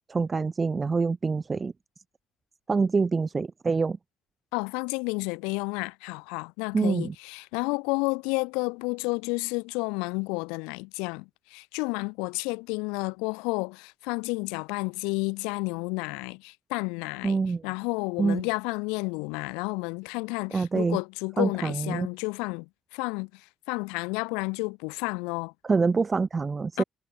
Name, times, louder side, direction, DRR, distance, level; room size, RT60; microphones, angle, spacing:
voice 1, 0.1-1.7 2.7-4.0 6.7-7.1 17.2-17.7 18.2-18.4 20.5-21.0 21.4-22.1 25.6-26.8, right 4 dB, 35° right, 6.9 m, -25 dB
voice 2, 4.5-25.5 26.8-26.9, left 31 dB, 80° left, 5.8 m, -31 dB
hypercardioid pair, 50°, 0 cm